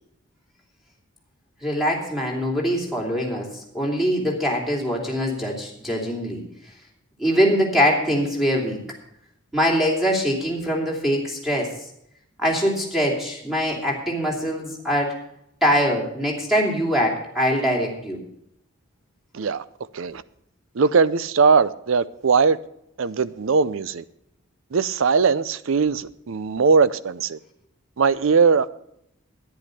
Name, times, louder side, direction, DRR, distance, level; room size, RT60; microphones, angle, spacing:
voice 1, 1.6-6.4 7.2-8.8 9.5-11.7 12.4-15.2 15.6-18.2, equal, ahead, 2.7 m, -23 dB
voice 2, 20.8-22.6 23.0-24.0 24.7-27.4 28.0-28.8, right 5 dB, 70° right, 0.5 m, -20 dB
10.5 x 10.0 x 6.5 m
head